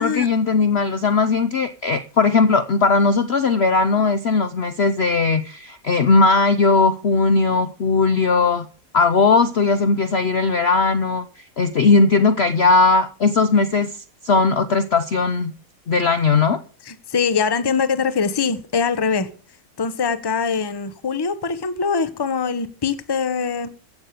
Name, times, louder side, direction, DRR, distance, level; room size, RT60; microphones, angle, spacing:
voice 1, 0.0-8.7 8.9-15.5 15.9-16.6, left 4 dB, 55° left, 0.8 m, -18 dB
voice 2, 16.9-19.3 19.8-23.7, left 5 dB, 20° left, 0.7 m, -23 dB
15.5 x 7.4 x 6.8 m
omnidirectional pair, 1.8 m